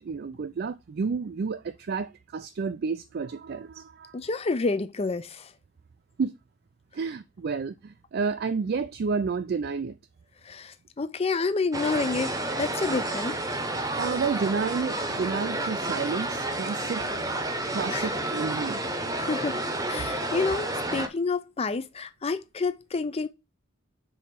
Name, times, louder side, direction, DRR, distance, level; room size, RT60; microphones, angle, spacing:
voice 1, 0.0-4.2 6.2-6.3 6.9-9.9 14.0-17.1 17.7-18.8, right 5 dB, 55° right, 0.4 m, -30 dB
voice 2, 4.1-5.4 10.5-12.3 12.6-13.4 17.9-18.2 19.2-19.6 19.9-23.3, left 4 dB, 30° left, 0.5 m, -29 dB
sound 1, 11.7-21.1, right 2 dB, 20° right, 0.9 m, -30 dB
4.7 x 4.2 x 5.2 m
head